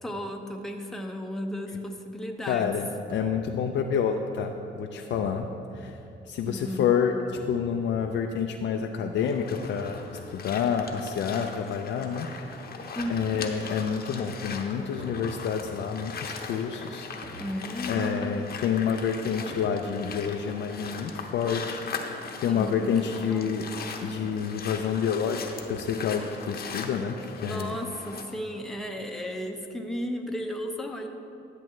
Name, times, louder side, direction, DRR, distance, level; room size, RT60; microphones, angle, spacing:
voice 1, 0.0-2.7 6.5-7.0 12.9-13.4 17.4-18.4 22.4-23.5 27.4-31.1, equal, ahead, 2 dB, 0.7 m, -34 dB
voice 2, 2.5-5.5 5.7-6.0 6.3-7.1 7.4-12.7 13.1-17.4 17.9-22.1 22.4-23.7 24.0-25.4 25.7-27.7, left 7 dB, 70° left, 3 dB, 0.5 m, -28 dB
sound 1, 3.1-3.6 5.1-6.0 7.3-8.1 9.6-10.3 13.0-13.5 15.0-15.8 17.2-18.0 19.5-20.2, right 1 dB, 45° right, 1.5 m, -46 dB
sound 2, 9.1-28.2, left 5 dB, 50° left, 0.9 m, -39 dB
10.5 x 7.5 x 3.2 m, 2.8 s
cardioid pair, 90°, 20 cm